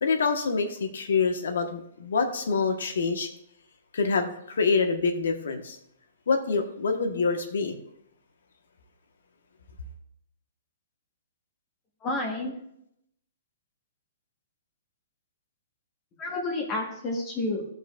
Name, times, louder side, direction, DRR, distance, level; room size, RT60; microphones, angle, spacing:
voice 1, 0.0-3.3 3.9-5.8 6.3-7.8, left 4 dB, 85° left, 5 dB, 1.1 m, -26 dB
voice 2, 12.0-12.6 16.2-17.7, left 2 dB, 25° left, 0 dB, 1.2 m, -30 dB
15.5 x 5.5 x 2.4 m, 0.73 s
hypercardioid pair, 155°, 0 cm